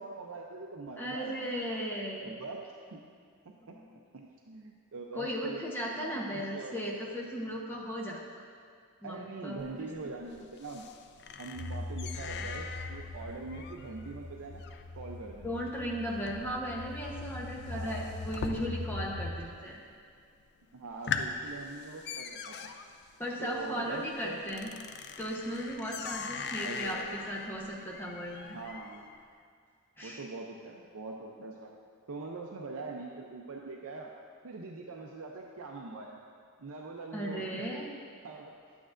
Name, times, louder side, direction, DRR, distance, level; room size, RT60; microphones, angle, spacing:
voice 1, 0.0-1.5 2.3-3.0 3.7-3.8 4.1-5.6 6.0-6.8 9.0-10.9 11.4-14.6 14.9-15.5 17.7-18.2 20.7-22.7 23.4-24.5 26.6-27.2 28.5-29.1 30.0-31.7 32.1-34.1 34.4-36.2 36.6-37.6 38.2-38.5, right 3 dB, 65° right, 0 dB, 0.5 m, -43 dB
voice 2, 1.0-2.4 3.7-3.9 5.1-8.2 9.0-9.9 15.4-19.8 23.2-24.7 25.2-28.6 30.0-30.3 37.1-37.9, equal, 10° left, -3 dB, 0.9 m, -36 dB
sound 1, 9.6-19.2 19.4-20.0 20.4-20.5 20.8-29.2, left 6 dB, 50° left, 0.4 m, -42 dB
sound 2, 11.5-19.5, left 2 dB, 80° left, 0.9 m, -41 dB
10.0 x 8.6 x 2.5 m, 2.1 s
head